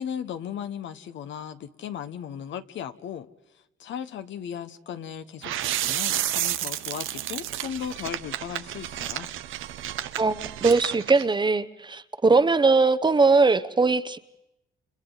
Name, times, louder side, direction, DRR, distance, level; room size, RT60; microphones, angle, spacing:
voice 1, 0.0-3.3 3.8-9.3, left 8 dB, 70° left, 1.2 m, -36 dB
sound 1, 5.4-11.2, right 12 dB, 85° right, 0.8 m, -31 dB
voice 2, 10.2-14.2, right 4 dB, 20° right, 0.8 m, -20 dB
30.0 x 29.5 x 4.0 m
cardioid pair, 90°, 20 cm